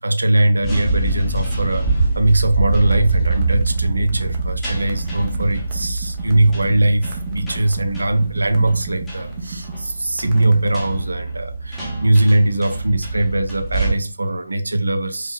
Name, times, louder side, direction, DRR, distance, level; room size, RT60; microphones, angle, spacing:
voice 1, 0.0-15.3, right 2 dB, 65° right, 0.6 m, -20 dB
sound 1, 0.6-13.9, right 3 dB, 10° left, 0.9 m, -25 dB
sound 2, 2.7-10.8, right 4 dB, 20° right, 0.7 m, -35 dB
4.8 x 3.0 x 2.2 m
figure-of-eight pair, 150°, 0 cm